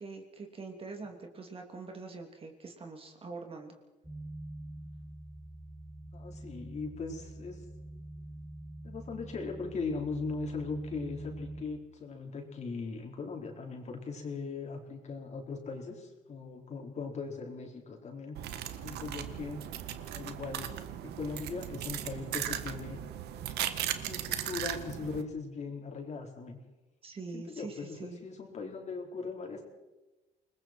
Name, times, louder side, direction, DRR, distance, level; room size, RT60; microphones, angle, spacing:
voice 1, 0.0-3.8 27.0-28.2, right 4 dB, 35° right, 3 dB, 3.1 m, -44 dB
sound 1, 4.0-11.6, right 1 dB, 5° right, 3.1 m, -45 dB
voice 2, 6.1-7.6 8.8-18.4 18.8-19.6 20.1-20.7 21.0-23.0 24.0-26.6 27.3-29.6, left 4 dB, 40° left, 1 dB, 4.5 m, -39 dB
sound 2, 18.4-25.2, right 11 dB, 75° right, 1.6 m, -37 dB
29.0 x 20.5 x 4.6 m, 1.1 s
cardioid pair, 110°, 17 cm